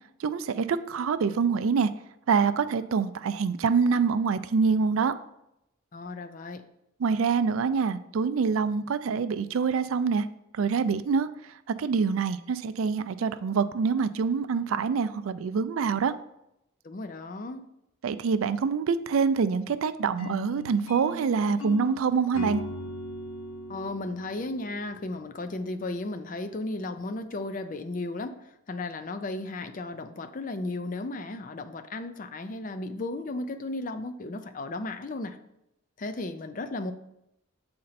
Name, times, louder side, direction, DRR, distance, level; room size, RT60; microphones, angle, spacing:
voice 1, 0.2-1.9 2.3-5.1 7.0-10.2 10.5-11.3 11.8-16.1 18.0-22.6, right 5 dB, 80° right, 13 dB, 0.4 m, -25 dB
voice 2, 5.9-6.6 16.8-17.7 23.7-28.4 28.7-35.4 36.0-36.9, left 2 dB, 40° left, 10 dB, 0.4 m, -35 dB
sound 1, 20.2-25.3, left 1 dB, 85° left, 0.9 m, -39 dB
7.6 x 4.3 x 4.1 m, 0.83 s
head